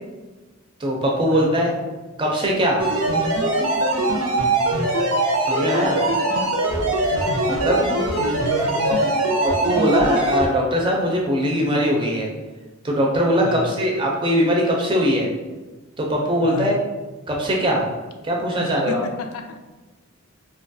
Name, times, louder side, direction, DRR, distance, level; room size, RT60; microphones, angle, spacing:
voice 1, 0.8-1.7 2.2-2.8 5.4-6.0 7.6-7.8 9.4-12.3 12.8-15.3 16.0-16.7 17.3-17.9 18.2-19.0, equal, 20° right, -1 dB, 0.4 m, -21 dB
voice 2, 1.3-1.7 6.3-6.5 7.0-7.6 8.2-9.2 13.4-13.9 16.4-16.8 18.6-19.6, left 3 dB, 85° left, 6 dB, 0.3 m, -33 dB
sound 1, 2.8-10.5, right 2 dB, 90° right, 0.6 m, -21 dB
2.7 x 2.2 x 2.6 m, 1.2 s
head